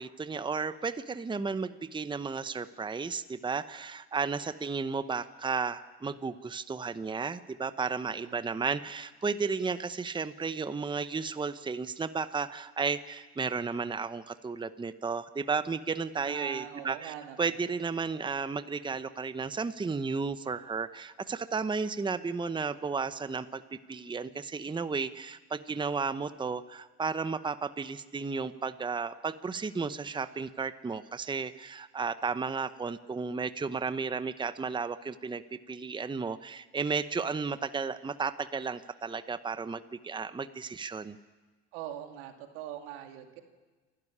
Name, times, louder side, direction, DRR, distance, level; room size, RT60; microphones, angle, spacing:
voice 1, 0.0-41.2, right 5 dB, 15° right, 12 dB, 0.8 m, -33 dB
voice 2, 8.1-8.6 16.2-17.6 41.7-43.4, right 11 dB, 90° right, 5 dB, 2.4 m, -42 dB
28.0 x 12.5 x 9.9 m, 1.3 s
supercardioid pair, 85°, 30 cm